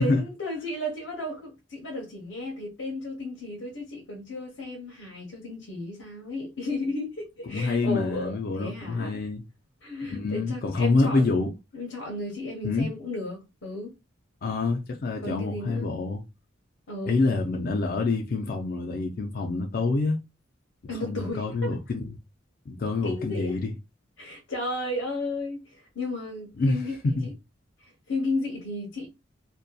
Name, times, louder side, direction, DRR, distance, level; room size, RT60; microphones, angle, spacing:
voice 1, 0.0-9.2 9.8-13.9 15.2-15.9 16.9-17.2 20.9-21.7 23.0-23.6 24.2-26.9 27.2-27.3 27.8-29.1, left 2 dB, 80° left, 0.9 m, -34 dB
voice 2, 7.5-9.4 10.1-11.5 12.6-12.9 14.4-16.2 17.1-20.2 21.0-22.2 22.7-23.7 26.6-26.8 27.2-27.3, left 3 dB, 45° left, 0.4 m, -26 dB
2.6 x 2.2 x 2.2 m
head